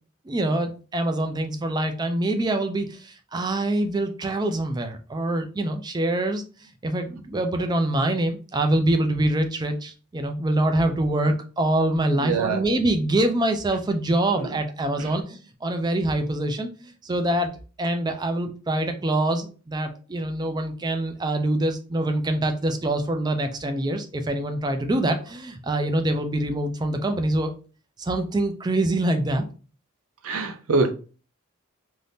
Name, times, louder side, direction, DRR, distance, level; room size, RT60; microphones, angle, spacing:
voice 1, 0.3-6.4 6.8-16.7 17.0-17.5 17.8-27.5 28.0-29.4, right 1 dB, 20° right, 0.4 m, -25 dB
voice 2, 12.2-12.6 14.4-14.5 15.0-15.1 30.2-30.9, right 3 dB, 80° right, 0.6 m, -24 dB
2.6 x 2.5 x 3.4 m
head